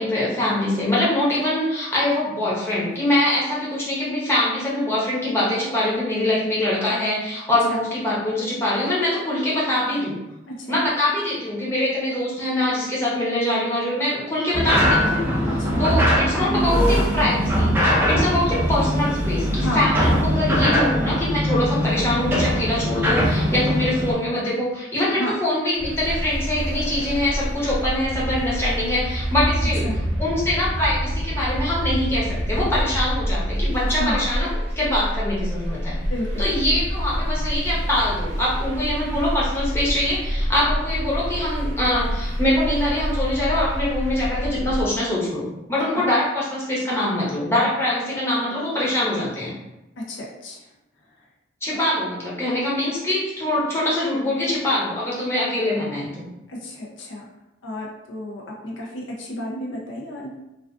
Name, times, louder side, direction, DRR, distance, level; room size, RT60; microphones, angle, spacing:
voice 1, 0.0-10.2 10.7-15.3 15.8-29.8 30.2-34.5 34.8-36.0 36.4-49.5 51.6-56.3, left 1 dB, 15° left, -7 dB, 0.7 m, -23 dB
voice 2, 10.5-10.8 15.4-15.9 19.5-19.8 25.2-25.3 29.8-30.0 33.8-34.3 36.1-36.5 45.9-46.0 50.0-50.7 51.0-51.3 51.7-51.8 56.5-57.3 57.6-60.3, left 1 dB, 90° left, -2 dB, 0.5 m, -32 dB
sound 1, 14.5-24.1, equal, 10° right, 0.3 m, -21 dB
sound 2, 25.8-44.8, equal, 65° right, 0.5 m, -27 dB
2.3 x 2.3 x 2.4 m, 0.94 s
head